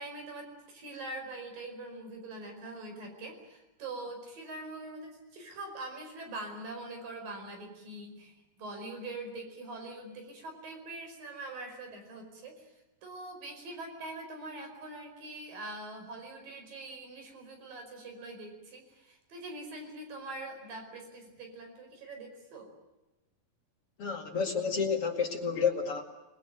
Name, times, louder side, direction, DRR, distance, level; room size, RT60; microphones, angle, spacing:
voice 1, 0.0-22.7, right 2 dB, 80° right, 4 dB, 6.7 m, -43 dB
voice 2, 24.0-26.0, left 6 dB, 45° left, 2 dB, 2.8 m, -30 dB
26.5 x 21.0 x 9.1 m, 1.0 s
omnidirectional pair, 3.9 m